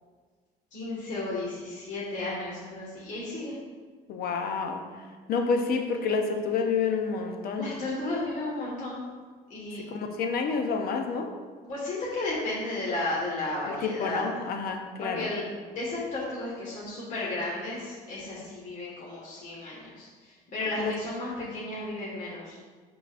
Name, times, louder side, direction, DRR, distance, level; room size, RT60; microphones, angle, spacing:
voice 1, 0.7-3.6 7.6-9.0 9.5-9.8 11.6-14.3 15.0-22.6, left 2 dB, 45° left, -6 dB, 1.7 m, -33 dB
voice 2, 4.1-4.8 5.3-7.7 9.9-11.3 13.6-15.3 20.8-20.9 21.4-21.5, left 5 dB, 65° left, 4 dB, 0.8 m, -29 dB
10.0 x 3.9 x 2.5 m, 1.5 s
cardioid pair, 110°, 17 cm